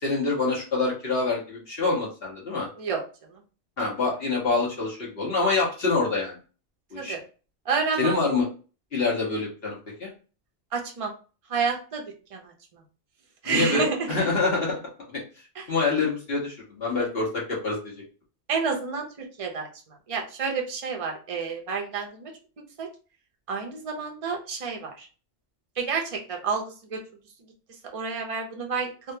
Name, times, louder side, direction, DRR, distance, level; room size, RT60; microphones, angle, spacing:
voice 1, 0.0-2.7 3.8-6.4 6.9-7.1 8.0-8.5 8.9-10.1 13.4-14.8 15.1-15.2 15.7-18.0, left 3 dB, 60° left, -4 dB, 1.5 m, -26 dB
voice 2, 7.7-8.2 10.7-11.1 11.5-12.0 12.3-12.8 13.4-14.1 15.6-15.7 18.5-22.3 22.8-22.9 23.5-25.1 25.8-27.0 27.9-28.9, right 5 dB, 35° right, 1 dB, 0.6 m, -29 dB
3.5 x 2.3 x 2.7 m, 0.36 s
omnidirectional pair, 1.2 m